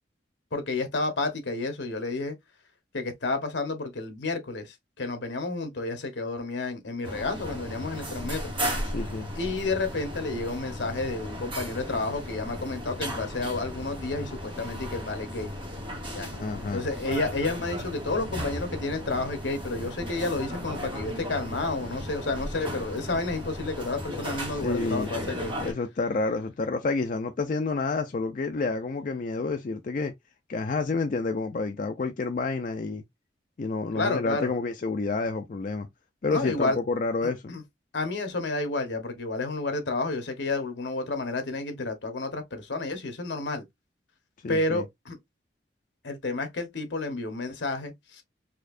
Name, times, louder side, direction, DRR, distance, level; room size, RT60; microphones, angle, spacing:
voice 1, 0.5-2.3 2.9-8.5 9.4-15.5 16.1-16.3 16.7-25.5 33.9-34.5 36.3-36.8 37.2-37.6 37.9-43.6 44.5-45.2 46.0-48.2, left 3 dB, 80° left, 1.0 m, -30 dB
sound 1, 7.0-25.7, equal, 30° right, 1.4 m, -35 dB
voice 2, 8.9-9.3 16.3-16.8 24.5-25.1 25.6-30.1 30.5-33.0 33.6-35.9 36.2-37.5 44.4-44.8, left 3 dB, 45° left, 0.4 m, -29 dB
4.2 x 2.7 x 2.5 m
head